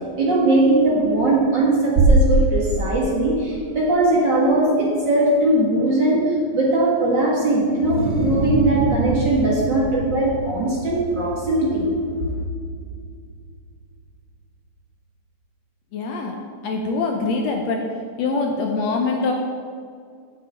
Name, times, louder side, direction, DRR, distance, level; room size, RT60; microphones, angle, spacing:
voice 1, 0.2-11.9, right 2 dB, 45° right, -4 dB, 1.9 m, -20 dB
sound 1, 2.0-4.0, right 2 dB, 90° right, 2.6 m, -19 dB
sound 2, 7.8-13.3, right 2 dB, 25° right, 2.1 m, -28 dB
voice 2, 15.9-16.4 16.6-17.8 18.2-19.3, left 3 dB, 70° left, 2 dB, 1.7 m, -23 dB
7.8 x 6.7 x 8.2 m, 2.2 s
omnidirectional pair, 3.6 m